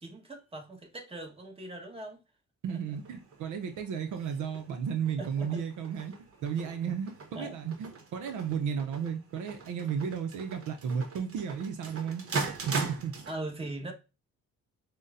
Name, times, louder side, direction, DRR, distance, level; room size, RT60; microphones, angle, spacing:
voice 1, 0.0-2.2 2.7-2.8 5.2-5.6 6.9-7.0 7.3-7.7 13.3-13.9, right 2 dB, 20° right, 1.3 m, -40 dB
voice 2, 2.6-6.1 6.4-12.2 12.7-13.1, right 7 dB, 75° right, 0.6 m, -34 dB
sound 1, 2.9-13.3, right 4 dB, 50° right, 1.1 m, -40 dB
6.3 x 2.2 x 2.5 m
cardioid pair, 90°, 30 cm